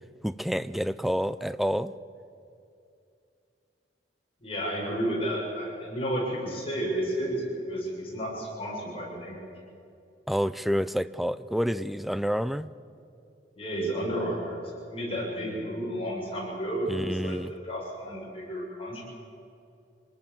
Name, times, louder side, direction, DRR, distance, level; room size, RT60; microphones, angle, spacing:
voice 1, 0.2-1.9 10.3-12.7 16.9-17.5, equal, ahead, 14 dB, 0.5 m, -28 dB
voice 2, 4.4-9.4 13.6-14.6 14.9-19.0, equal, 35° left, -3 dB, 7.5 m, -32 dB
26.0 x 19.5 x 7.4 m, 2.5 s
head